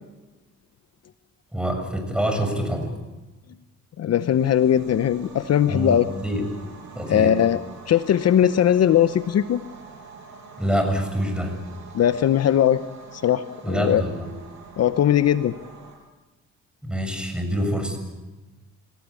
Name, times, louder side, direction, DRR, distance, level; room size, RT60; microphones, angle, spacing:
voice 1, 1.5-2.9 5.7-6.4 7.0-7.4 10.6-11.6 13.6-14.3 16.8-18.0, equal, 5° right, 6 dB, 7.0 m, -26 dB
voice 2, 4.0-6.0 7.1-7.6 7.9-9.6 11.9-12.8 13.1-14.0 14.8-15.5, left 10 dB, 55° left, 12 dB, 0.9 m, -19 dB
sound 1, 4.1-15.9, right 5 dB, 65° right, 7.7 m, -45 dB
28.5 x 18.0 x 8.4 m, 1.1 s
cardioid pair, 90°, 30 cm